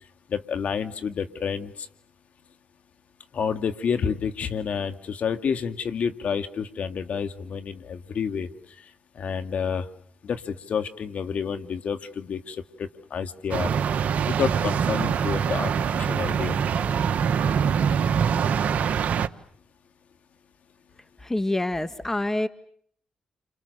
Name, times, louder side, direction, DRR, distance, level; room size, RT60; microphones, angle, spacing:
voice 1, 0.3-1.9 3.3-8.5 9.2-9.9 10.2-13.7 14.3-16.6, left 6 dB, 65° left, 8 dB, 2.3 m, -29 dB
sound 1, 13.5-19.3, right 7 dB, 70° right, 1.2 m, -24 dB
voice 2, 21.2-22.5, left 1 dB, 15° left, 11 dB, 1.7 m, -26 dB
30.0 x 27.5 x 6.8 m, 0.64 s
supercardioid pair, 55°, 3 cm